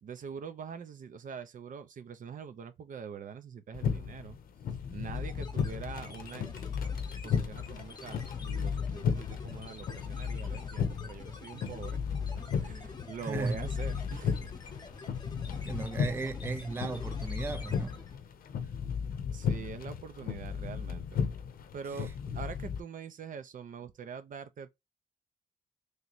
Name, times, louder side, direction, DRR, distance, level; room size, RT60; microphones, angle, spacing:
voice 1, 0.0-4.4 4.9-6.5 7.2-12.1 12.4-14.5 15.5-15.7 19.3-21.2 21.7-24.7, right 6 dB, 65° right, 0.6 m, -44 dB
sound 1, 3.7-22.8, left 6 dB, 85° left, 0.6 m, -35 dB
sound 2, 5.1-18.3, left 3 dB, 30° left, 0.8 m, -49 dB
voice 2, 13.2-13.6 15.7-18.0, right 3 dB, 15° right, 0.4 m, -35 dB
3.2 x 3.0 x 4.0 m
wide cardioid pair, 140°, 15 cm